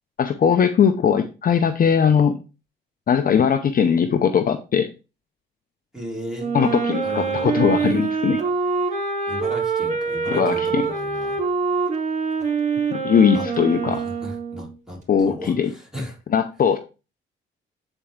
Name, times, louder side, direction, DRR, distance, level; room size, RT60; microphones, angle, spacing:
voice 1, 0.2-2.4 3.1-4.9 6.5-8.4 10.3-10.8 12.9-14.0 15.1-15.7 16.3-16.8, left 7 dB, 45° left, 8 dB, 0.7 m, -19 dB
voice 2, 5.9-6.5 7.0-7.6 9.3-11.4 13.3-16.2, equal, 5° right, -3 dB, 4.2 m, -35 dB
Wind instrument woodwind instrument, 6.4-14.7, right 5 dB, 35° right, 2.2 m, -25 dB
8.2 x 4.5 x 3.7 m, 0.31 s
cardioid pair, 90°, 20 cm